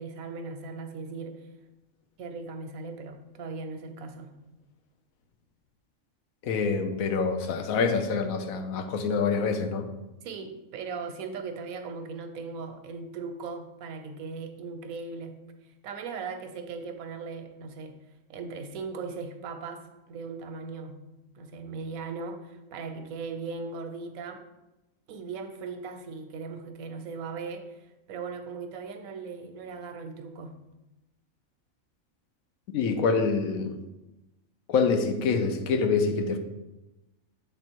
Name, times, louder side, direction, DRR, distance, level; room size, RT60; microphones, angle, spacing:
voice 1, 0.0-1.5 2.2-4.4 10.2-21.1 21.3-24.4 25.1-30.6, right 4 dB, 90° right, 1.1 m, -38 dB
voice 2, 6.4-9.8 32.7-33.8 34.7-36.4, left 5 dB, 90° left, 1.1 m, -26 dB
7.3 x 3.5 x 4.5 m
omnidirectional pair, 1.4 m